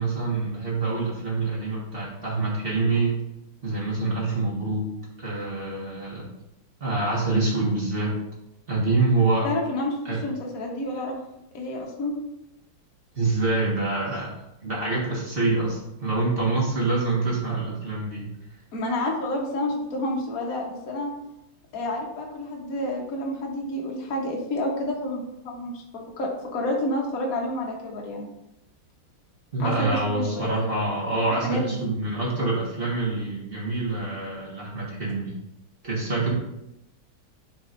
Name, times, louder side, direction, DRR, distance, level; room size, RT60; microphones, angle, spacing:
voice 1, 0.0-3.2 3.6-4.9 5.2-6.3 6.8-8.1 8.7-9.4 10.0-10.2 13.1-14.3 14.6-18.3 29.5-35.4 35.8-36.3, right 3 dB, 30° right, -5 dB, 1.6 m, -26 dB
voice 2, 9.4-11.2 11.5-12.2 14.1-14.2 18.7-21.1 21.7-28.3 29.6-30.6 31.4-31.9, left 1 dB, 45° left, -1 dB, 1.5 m, -29 dB
9.8 x 4.4 x 2.6 m, 0.87 s
omnidirectional pair, 2.4 m